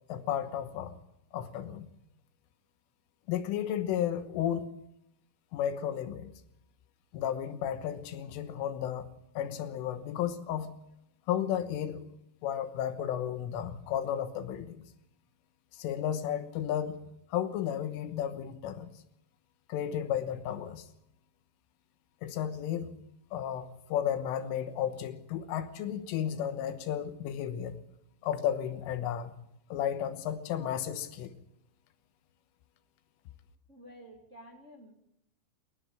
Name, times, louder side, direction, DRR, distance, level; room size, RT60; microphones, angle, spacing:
voice 1, 0.1-1.0 1.3-1.9 3.3-4.7 5.5-6.3 7.1-9.1 9.4-10.7 11.3-12.0 12.4-14.8 15.8-17.0 17.3-18.9 19.7-20.8 22.2-22.9 23.3-27.8 28.2-29.3 29.7-31.3, left 10 dB, 80° left, 3.6 m, -33 dB
voice 2, 33.7-34.9, equal, 35° right, 1.2 m, -51 dB
28.5 x 10.5 x 8.8 m
omnidirectional pair, 6.0 m